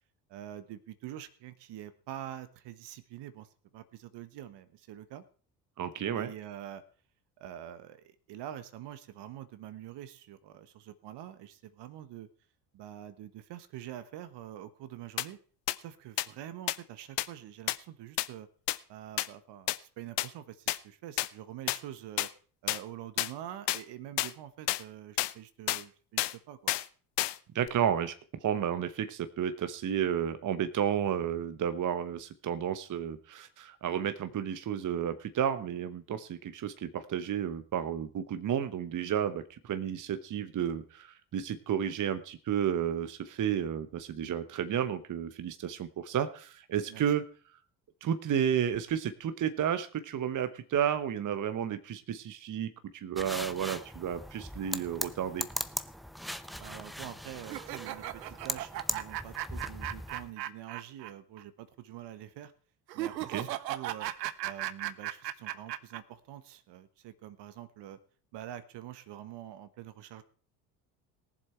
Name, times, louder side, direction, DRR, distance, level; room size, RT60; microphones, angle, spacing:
voice 1, 0.3-5.2 6.2-6.8 7.4-12.3 12.7-15.4 15.8-18.5 18.9-22.3 22.6-26.7 46.9-47.0 56.6-62.5 62.9-64.1 64.4-68.0 68.3-70.2, right 12 dB, 60° right, 13 dB, 1.3 m, -45 dB
voice 2, 5.8-6.3 27.5-28.1 28.4-47.2 48.0-55.5 63.3-63.5, right 9 dB, 40° right, 12 dB, 1.0 m, -32 dB
sound 1, 15.2-15.3 15.7-15.8 16.2-16.3 16.7-16.8 17.2-17.3 17.7-17.8 18.2-18.3 18.7-18.8 19.2-19.3 19.7-19.8 20.2-20.3 20.7-20.8 21.2-21.3 21.7-21.8 22.2-22.3 22.7-22.8 23.2-23.3 23.7-23.8 24.2-24.3 24.7-24.8 25.2-25.3 25.7-25.8 26.2-26.3 26.7-26.8 27.2-27.4 27.7-27.8, left 17 dB, 55° left, 0.8 m, -29 dB
sound 2, 53.2-60.3, equal, ahead, 0.7 m, -39 dB
sound 3, 57.4-61.1 61.4-61.5 62.9-66.0, right 13 dB, 90° right, 0.8 m, -36 dB
19.0 x 7.5 x 4.4 m, 0.42 s
hypercardioid pair, 65°, 48 cm